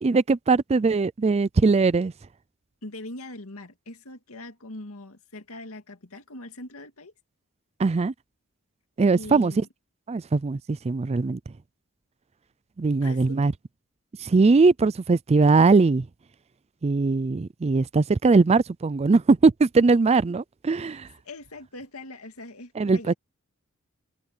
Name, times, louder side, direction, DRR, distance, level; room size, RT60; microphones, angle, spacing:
voice 1, 0.0-2.1 7.8-8.1 9.0-9.6 10.1-11.4 12.8-13.5 14.2-16.1 16.8-21.1 22.8-23.1, right 4 dB, 30° right, 0.4 m, -20 dB
voice 2, 2.8-7.1 9.2-9.7 13.0-13.4 20.9-21.0 21.2-23.1, left 2 dB, 75° left, 2.3 m, -41 dB
head